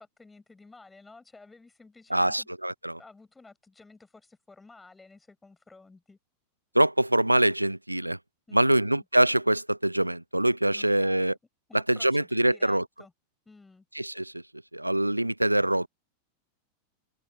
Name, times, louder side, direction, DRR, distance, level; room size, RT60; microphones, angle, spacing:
voice 1, 0.0-2.5 3.0-6.2 8.5-9.0 10.7-11.4 11.7-13.1 13.5-13.9, left 3 dB, 10° left, 7.5 m, -53 dB
voice 2, 2.1-3.0 6.7-8.2 8.5-11.3 11.7-12.8 13.9-14.4 14.7-15.9, right 1 dB, 85° right, 0.6 m, -24 dB
open air
figure-of-eight pair, 90°, 0 cm